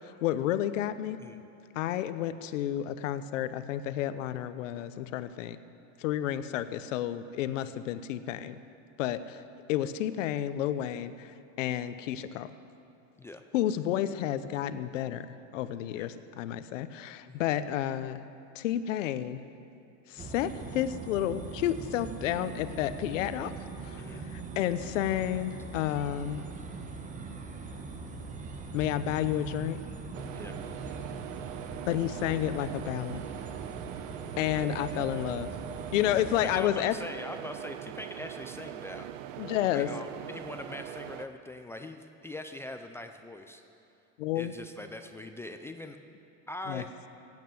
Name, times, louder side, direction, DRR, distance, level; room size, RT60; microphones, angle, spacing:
voice 1, 0.2-1.2 1.7-5.6 6.0-8.6 9.0-9.4 9.7-12.5 13.5-15.3 15.5-18.2 18.5-19.4 20.1-23.5 23.8-26.4 28.7-29.8 31.9-33.2 34.4-35.5 35.9-36.9 39.4-39.9 44.2-44.5 46.7-46.8, left 12 dB, 80° left, 12 dB, 0.9 m, -31 dB
sound 1, 20.2-36.7, right 4 dB, 20° right, 1.2 m, -41 dB
sound 2, 30.1-41.3, right 11 dB, 80° right, 0.8 m, -42 dB
voice 2, 36.4-39.1 39.7-43.6 44.4-46.0 46.5-46.9, left 1 dB, 5° left, 6 dB, 0.3 m, -42 dB
16.5 x 9.2 x 7.7 m, 2.6 s
supercardioid pair, 135°, 38 cm